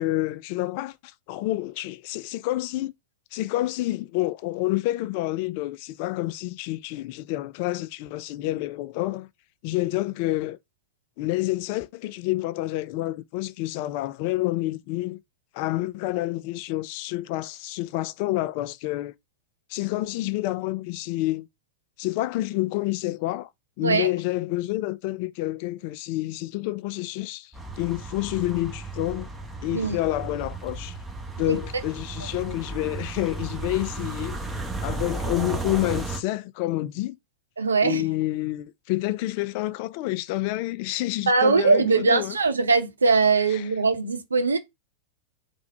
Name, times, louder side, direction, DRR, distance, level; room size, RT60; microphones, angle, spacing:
voice 1, 0.0-2.9 3.3-9.3 9.6-10.6 11.2-15.2 15.5-19.1 19.7-21.5 22.0-23.5 23.8-29.3 29.6-31.0 31.4-34.4 34.8-37.2 37.8-42.4 43.5-43.7, left 17 dB, 45° left, 0.3 m, -28 dB
sound 1, 27.5-36.2, right 3 dB, 5° right, 1.1 m, -34 dB
voice 2, 37.6-38.0 41.3-44.6, right 4 dB, 75° right, 0.7 m, -21 dB
3.4 x 2.5 x 4.5 m
figure-of-eight pair, 90°, 0 cm